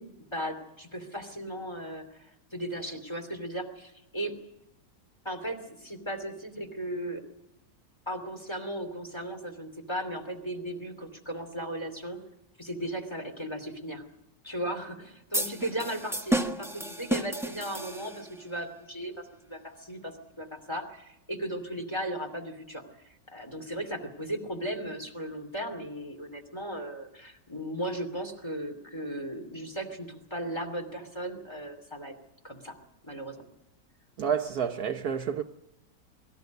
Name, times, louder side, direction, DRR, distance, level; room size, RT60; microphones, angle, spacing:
voice 1, 0.0-4.3 5.2-7.2 8.1-12.2 12.6-14.0 14.4-22.8 23.3-32.1 32.4-32.7 33.0-33.4, right 1 dB, 15° left, 2.8 m, -36 dB
sound 1, 15.3-18.4, right 1 dB, ahead, 1.2 m, -31 dB
voice 2, 34.2-35.4, right 7 dB, 60° right, 1.3 m, -29 dB
24.0 x 14.0 x 9.3 m
omnidirectional pair, 2.0 m